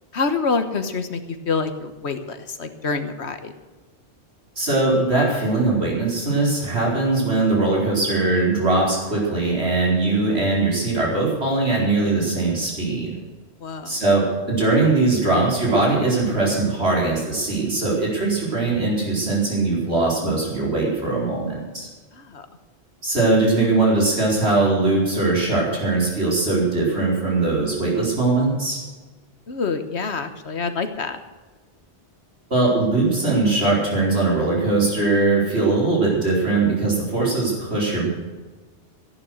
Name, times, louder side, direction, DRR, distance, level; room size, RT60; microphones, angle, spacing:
voice 1, 0.1-1.2 1.5-3.5 13.6-13.9 22.2-22.4 29.5-31.2, left 4 dB, 75° left, 9 dB, 1.6 m, -26 dB
voice 2, 4.6-13.2 13.8-21.9 23.0-28.8 32.5-38.1, right 3 dB, 65° right, -3 dB, 5.1 m, -21 dB
15.0 x 11.0 x 6.5 m, 1.3 s
omnidirectional pair, 1.1 m